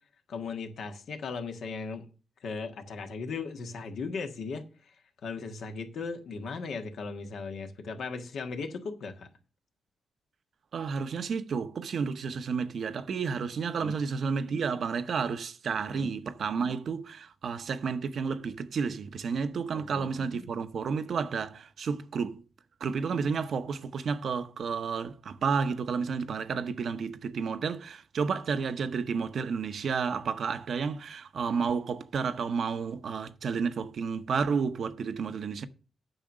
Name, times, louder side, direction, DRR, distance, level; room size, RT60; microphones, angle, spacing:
voice 1, 0.3-2.1 2.4-4.9 5.2-9.3 13.8-14.0 15.9-16.1 19.7-20.5, left 4 dB, 80° left, 1.5 m, -37 dB
voice 2, 10.7-22.4 22.8-35.7, right 5 dB, 70° right, 0.8 m, -31 dB
8.9 x 5.8 x 6.3 m
cardioid pair, 70°, 0 cm